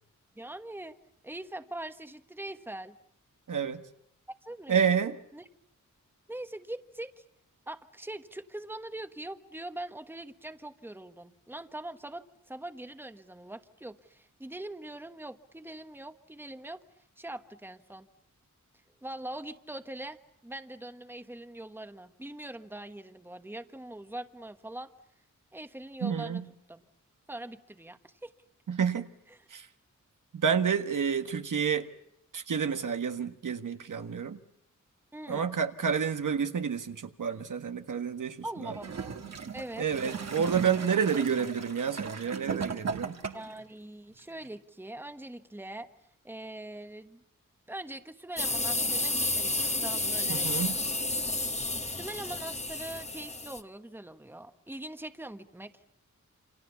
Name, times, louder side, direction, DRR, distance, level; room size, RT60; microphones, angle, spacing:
voice 1, 0.3-1.0 1.2-3.0 4.4-4.8 5.3-5.4 6.3-7.2 7.7-16.8 17.2-18.1 19.0-24.9 25.5-26.4 26.7-26.8 27.3-28.3 35.1-35.6 38.4-39.2 39.5-39.9 43.3-45.9 46.2-47.2 47.7-50.8 51.9-55.7, right 1 dB, 5° right, 9 dB, 1.3 m, -42 dB
voice 2, 3.5-3.8 4.7-5.2 26.0-26.4 28.7-29.1 29.5-29.7 30.3-31.9 32.3-34.4 35.3-38.7 39.8-43.2 50.3-50.7, right 7 dB, 80° right, 7 dB, 1.6 m, -29 dB
Gurgling / Toilet flush, 38.7-43.6 44.5-44.6, right 6 dB, 55° right, 1.8 m, -37 dB
sound 1, 48.4-53.6, left 2 dB, 20° left, 1.4 m, -31 dB
28.5 x 27.0 x 7.1 m, 0.75 s
wide cardioid pair, 110°, 31 cm